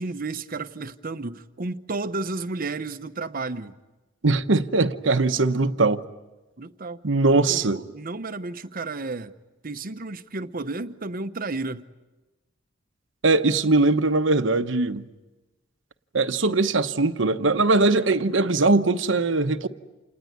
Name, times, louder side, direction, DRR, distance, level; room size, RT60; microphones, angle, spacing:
voice 1, 0.0-3.8 6.6-7.0 7.3-9.3 9.6-11.9, right 3 dB, 50° right, 0.9 m, -32 dB
voice 2, 4.2-6.0 7.0-7.8 13.2-15.1 16.1-19.7, right 3 dB, 70° right, 1.0 m, -21 dB
28.5 x 20.0 x 9.5 m
head